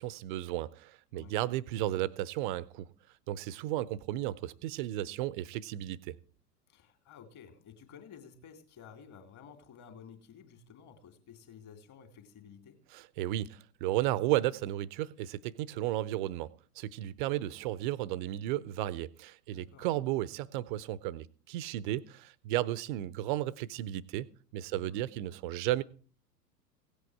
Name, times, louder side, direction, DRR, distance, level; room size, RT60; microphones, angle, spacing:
voice 1, 0.0-2.9 3.3-6.2 12.9-16.5 16.8-24.3 24.5-25.8, right 14 dB, 30° right, 0.5 m, -34 dB
voice 2, 6.7-12.8 19.5-19.9 24.7-25.0, left 7 dB, 35° left, 2.6 m, -53 dB
16.5 x 8.4 x 4.8 m
figure-of-eight pair, 95°, 49 cm